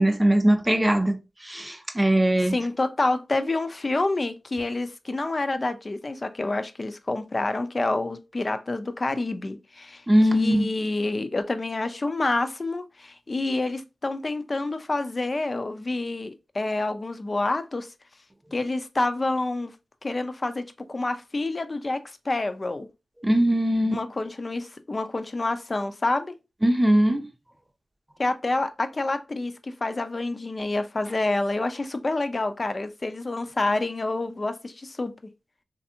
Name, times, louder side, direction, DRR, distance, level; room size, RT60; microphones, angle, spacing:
voice 1, 0.0-2.6 10.1-10.7 23.2-24.0 26.6-27.3, right 1 dB, 15° right, 0.6 m, -21 dB
voice 2, 2.5-10.0 10.3-17.9 18.5-19.7 20.0-22.9 23.9-26.3 28.2-35.1, left 2 dB, 45° left, 0.4 m, -28 dB
3.2 x 2.6 x 2.7 m
cardioid pair, 50°, 0 cm